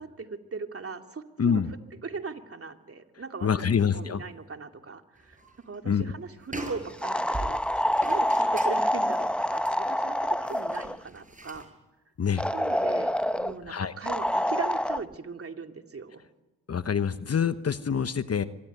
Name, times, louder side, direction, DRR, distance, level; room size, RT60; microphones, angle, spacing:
voice 1, 0.0-1.6 2.0-5.4 5.7-11.7 12.5-16.2, right 4 dB, 40° right, 5 dB, 2.6 m, -39 dB
voice 2, 1.4-1.7 3.4-4.2 5.8-6.1 12.2-12.4 13.7-13.9 16.7-18.4, left 7 dB, 45° left, 12 dB, 1.1 m, -26 dB
sound 1, 5.2-5.7 6.0-6.1 6.4-11.7, right 2 dB, 20° right, 7.7 m, -41 dB
sound 2, 7.0-11.0 12.4-13.5 14.1-15.0, equal, 5° left, 1.1 m, -26 dB
24.0 x 20.5 x 9.5 m, 1.1 s
supercardioid pair, 50°, 34 cm